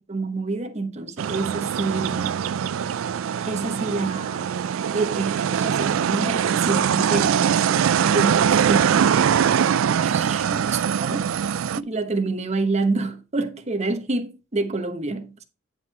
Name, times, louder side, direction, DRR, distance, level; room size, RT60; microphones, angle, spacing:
voice 1, 0.1-2.4 3.4-4.5 4.9-9.0 10.0-11.3 11.8-15.4, right 3 dB, 35° right, 1.0 m, -27 dB
sound 1, 1.2-11.8, right 8 dB, 85° right, 0.4 m, -22 dB
9.5 x 4.5 x 4.6 m
head